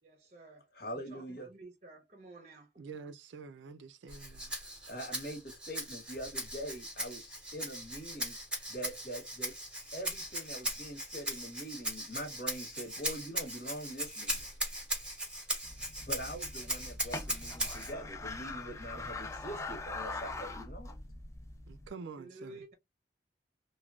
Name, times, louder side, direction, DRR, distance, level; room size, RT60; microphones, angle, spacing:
voice 1, 0.0-2.8 22.2-22.7, right 2 dB, 40° right, 0.6 m, -52 dB
voice 2, 0.7-1.5 4.9-8.4 8.7-9.5 9.9-14.5 16.0-21.0, equal, 55° left, 1.1 m, -43 dB
voice 3, 2.8-4.5 21.7-22.6, right 5 dB, 90° right, 0.4 m, -47 dB
Rattle (instrument), 4.1-17.9, right 1 dB, 5° right, 0.8 m, -39 dB
sound 1, 15.6-21.9, left 3 dB, 15° left, 0.4 m, -42 dB
3.2 x 2.2 x 2.4 m
head